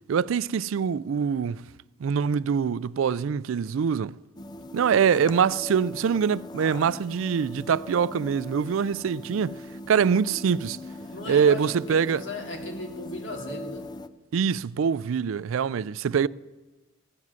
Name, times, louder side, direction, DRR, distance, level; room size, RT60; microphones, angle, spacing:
voice 1, 0.1-1.6 2.0-4.1 4.7-9.6 9.9-10.8 11.3-12.2 14.3-16.3, right 7 dB, 85° right, 0.4 m, -24 dB
sound 1, 4.4-14.1, left 1 dB, 20° left, 0.4 m, -40 dB
voice 2, 11.1-13.8, left 2 dB, 75° left, 2.7 m, -37 dB
16.0 x 7.5 x 9.4 m
head